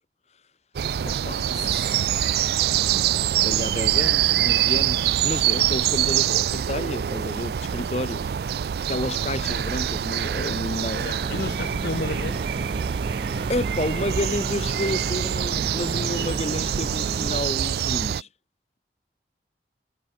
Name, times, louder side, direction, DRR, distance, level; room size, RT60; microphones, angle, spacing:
sound 1, 0.7-18.2, right 10 dB, 60° right, 0.3 m, -25 dB
voice 1, 1.0-2.6 3.4-8.3 8.9-11.2 13.5-18.3, left 1 dB, 35° left, 1.5 m, -31 dB
voice 2, 11.0-12.4, left 2 dB, 60° left, 0.8 m, -31 dB
sound 2, 11.2-17.4, right 2 dB, 30° right, 0.6 m, -34 dB
head